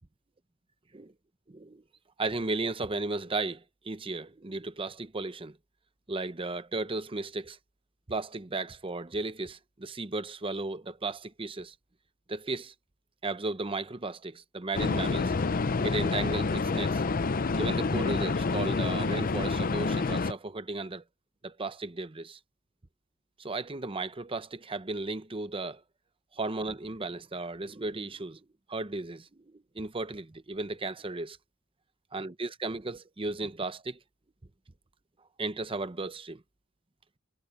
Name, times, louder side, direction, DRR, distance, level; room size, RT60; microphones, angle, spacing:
voice 1, 1.5-1.8 2.2-5.6 6.1-7.6 8.1-11.7 12.3-12.7 13.2-15.3 15.8-17.0 17.6-21.0 21.4-22.4 23.4-25.8 26.4-28.4 28.7-29.3 29.7-31.4 32.1-34.0 35.4-36.4, right 3 dB, 25° right, 0.8 m, -35 dB
sound 1, 14.7-20.3, left 3 dB, 45° left, 0.6 m, -28 dB
head